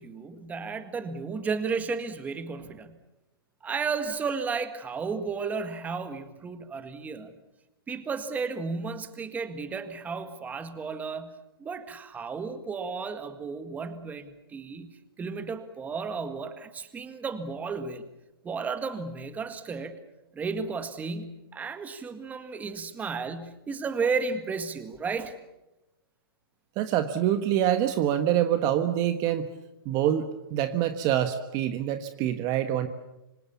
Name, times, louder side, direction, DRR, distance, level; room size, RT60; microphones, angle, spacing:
voice 1, 0.0-3.0 3.6-7.3 7.9-18.0 18.4-20.0 20.3-25.3, right 5 dB, 10° right, 10 dB, 1.8 m, -33 dB
voice 2, 26.8-29.5 29.8-32.9, right 11 dB, 30° right, 9 dB, 1.5 m, -26 dB
26.5 x 25.5 x 7.1 m, 0.95 s
hypercardioid pair, 140°, 13 cm